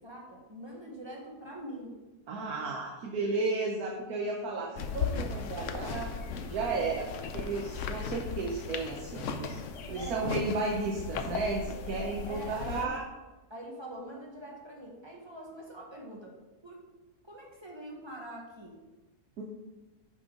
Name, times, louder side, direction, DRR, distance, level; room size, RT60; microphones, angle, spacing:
voice 1, 0.0-2.0 10.0-10.2 12.3-12.9 13.5-16.4 16.6-16.8 17.2-18.8, right 1 dB, 20° right, -3 dB, 1.2 m, -44 dB
voice 2, 2.3-6.1 6.4-7.1 7.3-9.6 9.9-13.0 19.4-19.5, right 3 dB, 70° right, -1 dB, 1.3 m, -33 dB
sound 1, 4.8-12.9, left 6 dB, 65° left, 0.8 m, -37 dB
8.1 x 5.4 x 3.8 m, 1.1 s
omnidirectional pair, 1.7 m